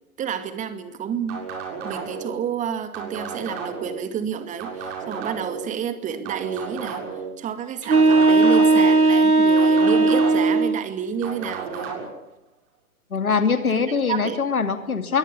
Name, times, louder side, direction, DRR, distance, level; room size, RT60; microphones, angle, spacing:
voice 1, 0.2-1.4 1.8-7.0 7.4-11.9 14.1-14.4, right 8 dB, 15° right, 10 dB, 2.3 m, -29 dB
sound 1, 1.3-2.3 2.9-4.0 4.6-5.6 6.2-7.3 7.9-9.0 9.6-10.6 11.2-12.1, right 5 dB, 35° right, 7.3 m, -33 dB
sound 2, 7.8-10.8, right 3 dB, 90° right, 1.9 m, -16 dB
voice 2, 13.1-15.2, left 5 dB, 80° left, 9 dB, 2.7 m, -22 dB
23.0 x 18.0 x 9.9 m, 0.84 s
figure-of-eight pair, 115°, 43 cm